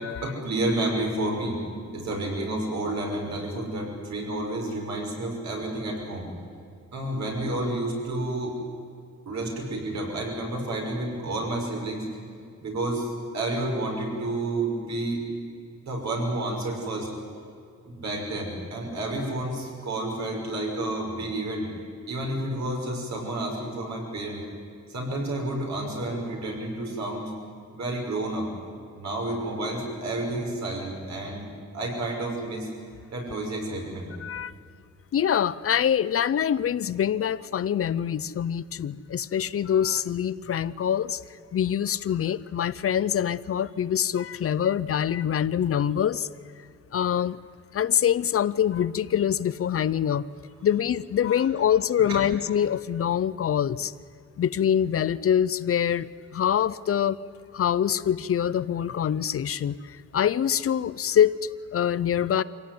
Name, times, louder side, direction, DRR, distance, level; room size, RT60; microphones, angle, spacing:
voice 1, 0.2-1.6 1.9-6.3 6.9-8.5 9.3-12.0 12.6-15.2 15.8-17.1 17.8-21.7 22.1-24.4 24.9-27.3 27.7-28.5 28.9-31.5 31.7-32.7 33.1-34.1 52.1-52.2, right 1 dB, 65° right, 0 dB, 6.1 m, -30 dB
voice 2, 34.2-34.5 35.1-41.2 41.5-46.3 46.9-47.4 47.7-50.2 50.6-53.9 54.4-57.2 57.5-62.4, left 9 dB, 50° left, 17 dB, 0.6 m, -25 dB
24.5 x 17.0 x 9.4 m, 2.4 s
wide cardioid pair, 145°, 29 cm